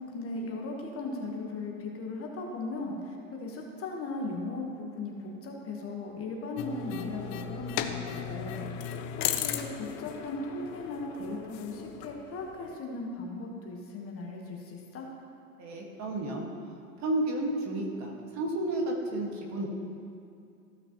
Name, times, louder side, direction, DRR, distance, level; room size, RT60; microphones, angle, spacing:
voice 1, 0.0-8.9 9.2-15.1, left 2 dB, 30° left, 0 dB, 1.4 m, -37 dB
sound 1, 6.6-12.8, left 9 dB, 45° left, 0.7 m, -36 dB
voice 2, 15.6-16.5 17.0-19.7, right 1 dB, 35° right, 0 dB, 1.7 m, -31 dB
15.5 x 5.7 x 3.0 m, 2.5 s
hypercardioid pair, 95°, 46 cm